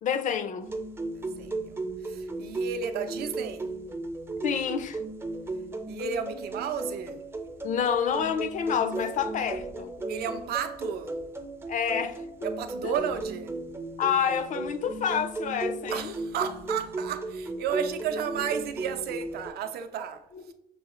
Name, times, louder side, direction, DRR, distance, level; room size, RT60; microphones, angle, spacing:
voice 1, 0.0-0.7 4.4-5.0 7.6-9.9 11.7-12.2 12.8-13.1 14.0-16.1 20.3-20.5, left 7 dB, 50° left, 0.4 m, -28 dB
sound 1, 0.6-19.5, right 2 dB, 15° right, 0.4 m, -35 dB
voice 2, 1.1-3.7 5.9-7.2 10.1-11.2 12.4-13.5 15.9-20.2, right 7 dB, 65° right, 0.5 m, -33 dB
6.2 x 2.3 x 3.0 m
cardioid pair, 110°, 17 cm